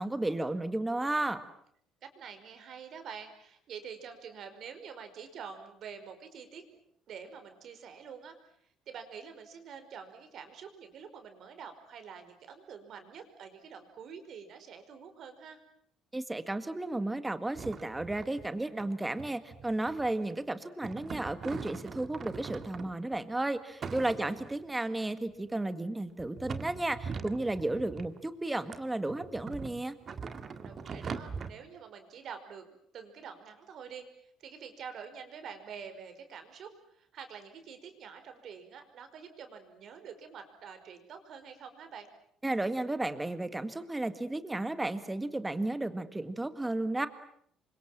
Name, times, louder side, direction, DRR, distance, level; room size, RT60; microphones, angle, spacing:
voice 1, 0.0-1.4 16.1-29.9 42.4-47.1, right 2 dB, 10° right, 11 dB, 1.8 m, -33 dB
voice 2, 2.0-6.6 7.1-8.4 8.9-15.6 23.9-24.5 30.6-32.7 32.9-42.1, right 7 dB, 50° right, 8 dB, 5.3 m, -47 dB
sound 1, 17.5-18.5 18.7-18.9 19.2-20.2 20.8-23.2 23.8-24.6 25.3-25.4 26.2-28.2 28.7-31.5, right 5 dB, 35° right, 1.9 m, -42 dB
28.0 x 25.0 x 7.6 m, 0.67 s
cardioid pair, 140°, 0 cm